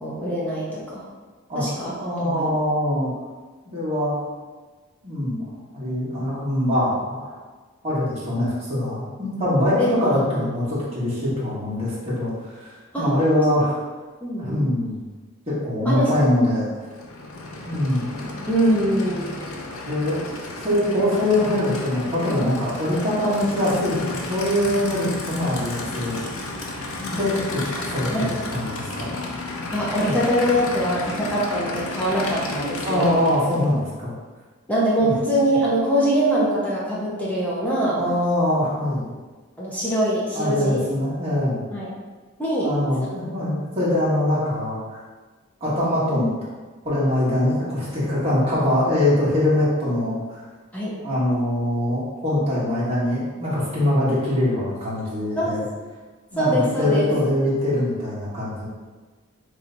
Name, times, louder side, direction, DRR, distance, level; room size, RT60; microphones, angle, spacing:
voice 1, 0.0-1.0 1.5-1.9 2.2-2.5 9.8-9.9 12.9-13.4 14.2-14.6 15.8-16.1 18.5-19.3 28.1-28.3 29.7-33.1 34.7-38.0 39.6-40.8 41.7-41.9 42.4-42.7 43.0-43.1 50.7-50.9 55.4-55.6 56.4-57.1, equal, 5° left, -7 dB, 0.7 m, -23 dB
voice 2, 1.5-3.1 3.6-4.1 5.0-5.4 5.7-7.3 7.8-13.7 14.4-15.0 15.6-16.7 17.6-18.3 19.8-20.2 20.6-26.2 27.0-29.1 30.0-30.1 32.8-34.1 35.0-35.1 38.0-39.1 40.3-41.6 42.6-45.0 45.6-46.3 46.8-50.4 51.0-55.6 56.3-58.6, left 1 dB, 30° right, -9 dB, 1.3 m, -23 dB
Aircraft / Idling, 16.8-33.8, left 2 dB, 80° left, 0.6 m, -33 dB
3.3 x 3.0 x 3.8 m, 1.3 s
head